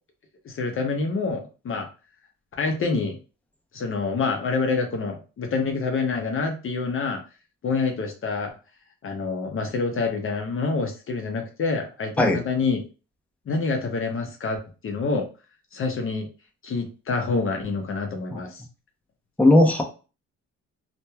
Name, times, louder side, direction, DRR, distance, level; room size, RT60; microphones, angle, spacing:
voice 1, 0.4-1.9 2.6-3.2 3.7-7.2 7.6-8.5 9.0-12.8 13.5-15.3 15.7-16.3 16.6-18.6, left 4 dB, 45° left, 3 dB, 0.6 m, -27 dB
voice 2, 19.4-19.8, left 1 dB, 5° left, 1 dB, 0.6 m, -17 dB
3.0 x 2.1 x 2.2 m, 0.33 s
cardioid pair, 90°, 30 cm